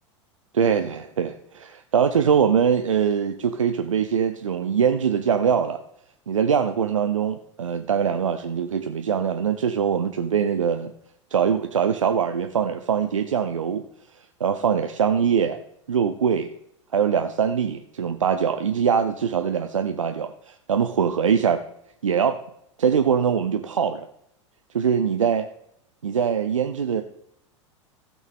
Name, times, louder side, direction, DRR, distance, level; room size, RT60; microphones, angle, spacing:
voice 1, 0.5-5.8 6.3-10.9 11.3-13.8 14.4-15.6 15.9-16.5 16.9-21.6 22.0-22.4 22.8-24.1 24.7-25.5 26.0-27.0, right 7 dB, 90° right, 7 dB, 0.6 m, -22 dB
16.0 x 6.2 x 3.6 m, 0.76 s
hypercardioid pair, 95°, 16 cm